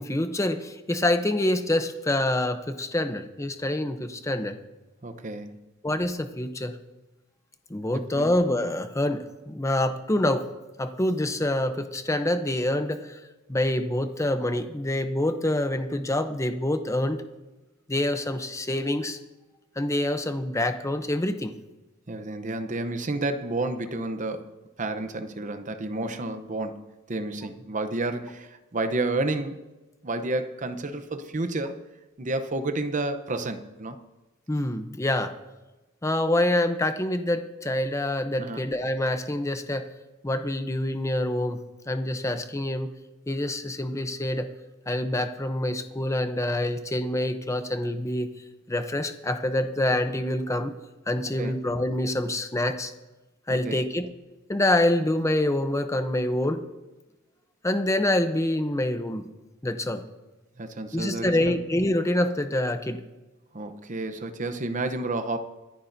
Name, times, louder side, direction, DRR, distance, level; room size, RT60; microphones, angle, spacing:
voice 1, 0.0-4.6 5.8-6.8 7.7-10.5 10.8-13.2 13.5-17.2 17.9-19.2 19.8-21.5 34.5-35.3 36.0-39.9 40.2-42.9 43.3-44.5 44.9-48.3 48.7-50.7 51.1-52.9 53.5-54.1 54.5-56.6 57.6-59.3 59.6-60.0 60.9-63.0, left 1 dB, 15° left, 0.7 m, -26 dB
voice 2, 5.0-5.6 7.9-8.3 22.1-24.5 24.8-29.6 30.0-31.8 32.2-34.0 38.4-38.6 51.4-51.6 53.5-53.8 60.6-61.6 63.5-65.4, right 2 dB, 40° right, 0.8 m, -30 dB
25.0 x 10.0 x 2.7 m
head